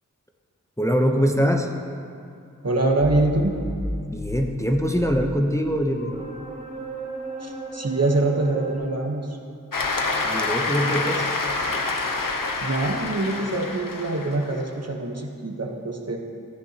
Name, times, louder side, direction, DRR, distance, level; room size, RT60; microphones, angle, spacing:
voice 1, 0.8-1.7 4.1-6.1 10.2-11.3, equal, 10° left, 2 dB, 0.7 m, -23 dB
voice 2, 2.6-3.5 7.4-9.4 12.6-16.2, right 2 dB, 50° right, 2 dB, 1.1 m, -24 dB
sound 1, 3.0-8.8, right 1 dB, 20° right, 2.0 m, -34 dB
Cheering / Applause, 9.7-14.6, left 3 dB, 80° left, 0.8 m, -27 dB
14.5 x 9.5 x 2.9 m, 2.4 s
wide cardioid pair, 45°, 32 cm